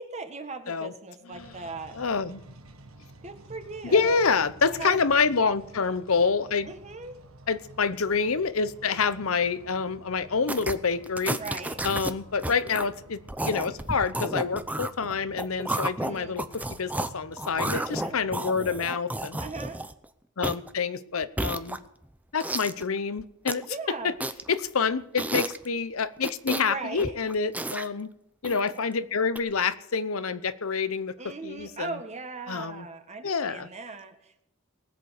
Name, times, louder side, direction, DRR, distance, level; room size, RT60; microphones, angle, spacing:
voice 1, 0.0-2.0 3.2-4.2 4.7-5.0 6.6-7.2 11.4-11.8 16.0-16.4 17.5-18.2 19.4-19.8 23.6-24.1 26.6-27.1 31.2-34.4, right 3 dB, 35° right, 6 dB, 1.7 m, -38 dB
sound 1, 1.3-18.3, right 1 dB, 90° right, 1.6 m, -51 dB
voice 2, 1.9-2.4 3.8-6.7 7.5-11.4 11.8-19.4 20.4-21.8 22.3-24.2 24.5-28.1 28.4-31.2 31.4-32.0 32.5-32.9 33.2-33.7, left 5 dB, 80° left, 14 dB, 0.9 m, -27 dB
sound 2, 10.5-10.8 11.0-12.1 12.4-12.9 13.3-17.1 17.4-20.0 20.4-20.7 21.2-22.0 22.4-22.8 23.2-23.6 24.2-24.6 25.2-25.7 26.2-26.7 27.0-27.9 28.4-28.8 29.4-29.5, right 1 dB, 5° right, 0.7 m, -32 dB
19.5 x 8.1 x 6.6 m, 0.81 s
head